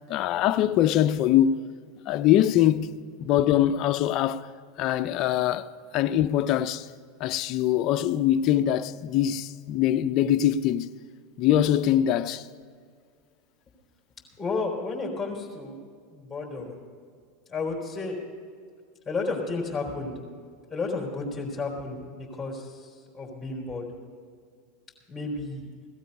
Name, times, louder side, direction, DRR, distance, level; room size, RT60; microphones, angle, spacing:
voice 1, 0.1-1.5 2.1-4.5 4.8-6.9 7.2-10.9 11.4-12.5, left 11 dB, 50° left, 0.6 m, -23 dB
voice 2, 14.4-15.8 16.1-16.7 17.5-18.2 19.0-20.2 20.7-23.9 25.1-25.7, left 3 dB, 10° left, 4.0 m, -32 dB
17.0 x 13.0 x 5.5 m
hypercardioid pair, 105°, 0 cm